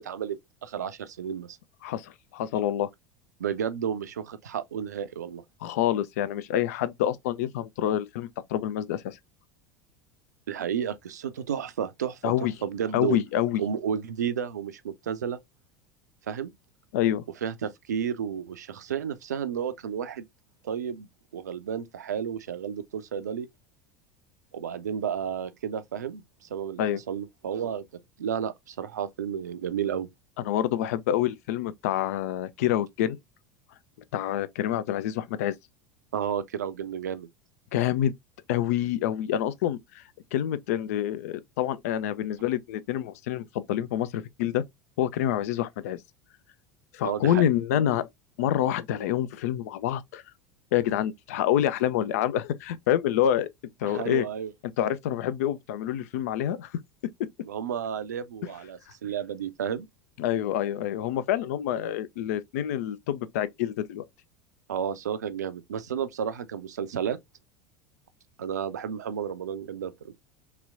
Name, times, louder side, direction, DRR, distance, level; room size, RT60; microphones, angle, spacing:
voice 1, 0.0-1.6 3.4-5.4 10.5-13.2 13.6-15.4 16.3-16.5 17.4-20.2 20.6-23.5 24.5-27.8 28.2-30.1 36.1-37.3 47.0-47.5 53.8-54.5 57.4-59.9 64.7-67.2 68.4-70.2, right 8 dB, 70° right, 0.4 m, -32 dB
voice 2, 1.8-2.9 5.6-9.2 12.2-12.5 12.9-13.6 16.9-17.2 26.8-27.0 30.5-33.2 34.1-35.6 37.7-38.1 38.5-40.0 40.3-44.6 45.0-46.0 46.9-48.1 48.4-50.2 50.7-53.5 53.8-54.3 54.8-56.7 60.2-64.0, left 11 dB, 55° left, 0.4 m, -27 dB
3.0 x 3.0 x 2.4 m
figure-of-eight pair, 75°, 9 cm